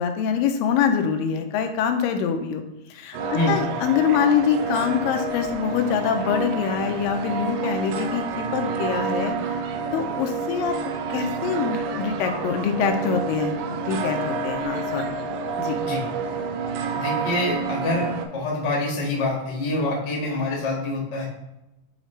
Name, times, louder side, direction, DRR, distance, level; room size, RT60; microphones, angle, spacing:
voice 1, 0.0-2.6 2.9-9.6 9.9-10.8 11.1-15.1 15.6-15.8, left 7 dB, 85° left, 6 dB, 2.3 m, -24 dB
sound 1, 3.1-18.3, right 4 dB, 85° right, 1.6 m, -29 dB
voice 2, 16.9-18.1 18.3-21.3, left 2 dB, 45° left, -3 dB, 0.8 m, -26 dB
8.0 x 4.0 x 3.1 m, 0.93 s
omnidirectional pair, 4.0 m